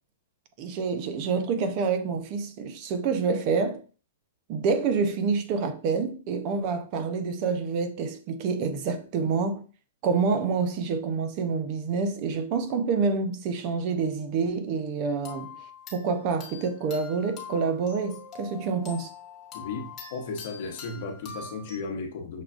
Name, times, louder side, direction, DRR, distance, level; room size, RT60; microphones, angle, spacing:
voice 1, 0.6-3.8 4.5-9.6 10.0-15.5 15.9-19.1, right 5 dB, 40° right, 0.6 m, -27 dB
sound 1, 15.2-21.7, left 5 dB, 25° left, 1.1 m, -44 dB
voice 2, 19.5-22.4, left 4 dB, 60° left, 1.0 m, -35 dB
6.4 x 2.3 x 2.4 m
hypercardioid pair, 140°, 0 cm